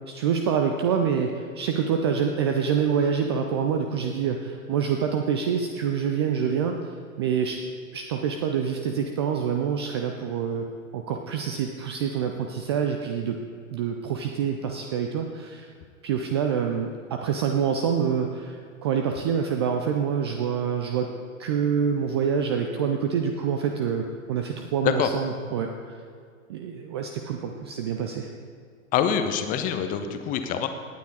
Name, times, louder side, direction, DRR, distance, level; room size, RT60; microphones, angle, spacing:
voice 1, 0.1-7.6 7.9-13.4 13.7-15.7 16.0-21.1 21.4-26.0 26.5-28.3, right 7 dB, 20° right, 4 dB, 0.4 m, -26 dB
voice 2, 28.9-30.7, left 8 dB, 20° left, 8 dB, 0.7 m, -25 dB
17.0 x 9.2 x 4.0 m, 2.2 s
figure-of-eight pair, 100°, 42 cm